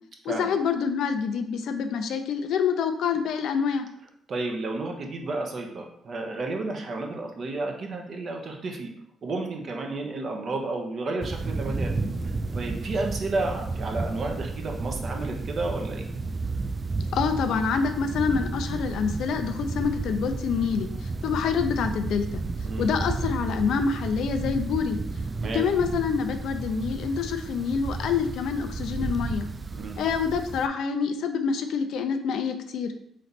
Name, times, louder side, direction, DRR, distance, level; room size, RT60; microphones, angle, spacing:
voice 1, 0.2-3.9 17.1-22.4 22.8-25.0 25.5-29.5 30.0-32.9, left 6 dB, 75° left, 7 dB, 0.5 m, -26 dB
voice 2, 4.3-8.9 9.2-11.9 12.5-16.1 22.6-22.9 25.3-25.6 29.7-30.0, right 2 dB, 50° right, 2 dB, 0.9 m, -31 dB
sound 1, 11.2-30.7, right 3 dB, 30° right, 0.3 m, -32 dB
4.0 x 3.2 x 4.1 m, 0.71 s
cardioid pair, 90°, 0 cm